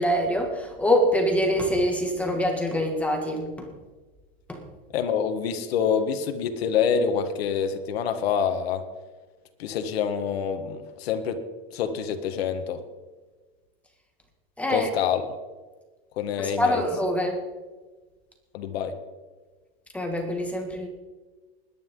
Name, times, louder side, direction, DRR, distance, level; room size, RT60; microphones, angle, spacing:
voice 1, 0.0-3.7 4.5-4.6 14.6-14.9 16.4-17.4 19.9-20.9, equal, 5° left, 2 dB, 2.1 m, -25 dB
voice 2, 4.9-8.8 9.6-11.4 11.7-12.8 14.7-15.3 16.2-16.8 18.5-18.9, left 7 dB, 80° left, 7 dB, 1.6 m, -26 dB
20.5 x 10.5 x 3.9 m, 1.3 s
supercardioid pair, 145°, 30 cm